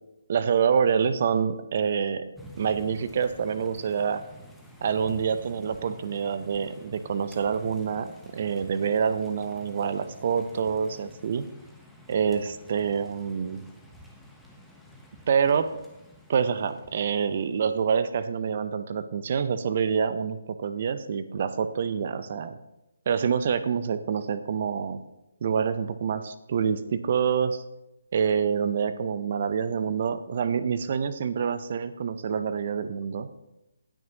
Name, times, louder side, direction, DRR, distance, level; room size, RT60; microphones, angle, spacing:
voice 1, 0.3-2.3 2.6-4.2 4.8-11.5 12.1-13.7 15.3-15.7 16.3-22.6 23.1-25.0 25.4-27.6 28.1-33.3, right 6 dB, 45° right, 12 dB, 0.7 m, -26 dB
sound 1, 2.4-17.9, left 1 dB, ahead, 1.0 m, -50 dB
18.5 x 6.3 x 2.9 m, 0.94 s
figure-of-eight pair, 145°, 0 cm